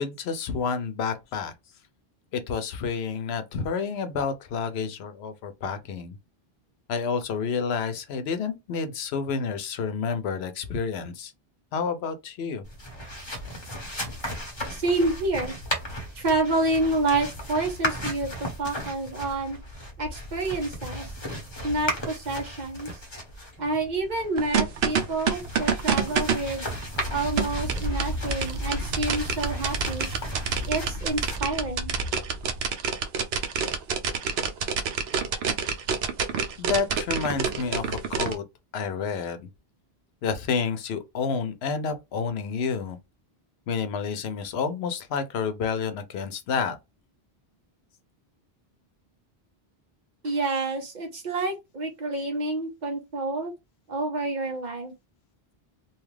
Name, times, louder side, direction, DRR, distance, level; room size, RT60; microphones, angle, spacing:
voice 1, 0.0-1.5 2.3-6.2 6.9-11.3 11.7-12.6 36.6-38.4 38.7-39.5 40.2-43.0 43.7-46.8, left 5 dB, 90° left, 0.9 m, -29 dB
sound 1, 12.6-32.6, equal, 30° left, 0.9 m, -34 dB
voice 2, 14.7-15.5 16.2-18.3 18.6-19.6 20.0-21.0 21.6-22.9 23.6-26.6 27.1-30.1 30.7-31.9 50.2-53.5 53.9-54.9, right 2 dB, 45° right, 1.0 m, -28 dB
sound 2, 24.4-38.3, right 6 dB, 80° right, 0.8 m, -27 dB
2.7 x 2.4 x 3.2 m
omnidirectional pair, 1.0 m